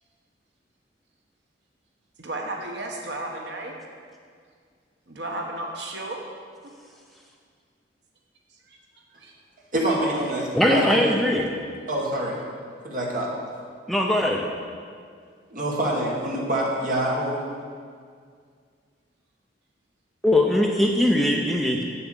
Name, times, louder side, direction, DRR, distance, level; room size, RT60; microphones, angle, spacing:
voice 1, 2.2-3.8 5.1-6.2 8.5-8.8 9.1-9.3, right 2 dB, 70° right, 1 dB, 1.2 m, -34 dB
voice 2, 9.7-11.2 11.9-12.4 12.8-13.3 15.5-17.4, right 1 dB, 45° right, -3 dB, 2.0 m, -26 dB
voice 3, 10.6-11.5 13.9-14.4 20.2-21.8, left 1 dB, ahead, 0 dB, 0.6 m, -20 dB
7.2 x 7.0 x 8.2 m, 2.1 s
head